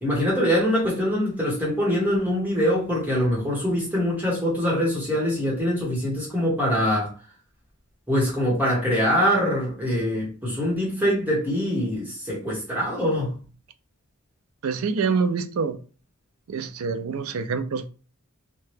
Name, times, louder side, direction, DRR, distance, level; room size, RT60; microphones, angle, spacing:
voice 1, 0.0-7.1 8.1-13.4, equal, 10° right, 1.1 m, -23 dB
voice 2, 14.6-15.8 16.5-17.9, right 5 dB, 75° right, 0.4 m, -26 dB
2.8 x 2.2 x 3.2 m
head